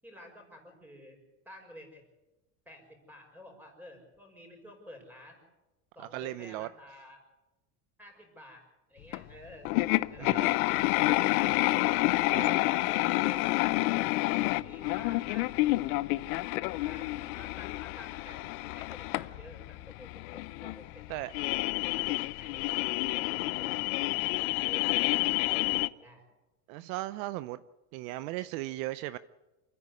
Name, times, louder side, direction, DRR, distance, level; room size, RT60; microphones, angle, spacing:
voice 1, 0.0-1.2 1.5-2.0 2.7-5.4 5.9-7.2 8.0-8.6 8.9-10.4 12.4-13.6 14.1-15.6 16.8-21.1 21.8-22.8 23.1-23.8 24.1-26.2, left 1 dB, 5° right, 2 dB, 5.8 m, -51 dB
voice 2, 6.0-6.7 10.2-10.5 12.3-12.7 21.1-21.3 26.7-27.6 27.9-29.2, right 17 dB, 60° right, 15 dB, 0.7 m, -37 dB
sound 1, 9.1-9.2 9.6-25.9, left 20 dB, 70° left, 0.8 m, -29 dB
28.0 x 10.0 x 9.8 m, 1.1 s
supercardioid pair, 145°, 45 cm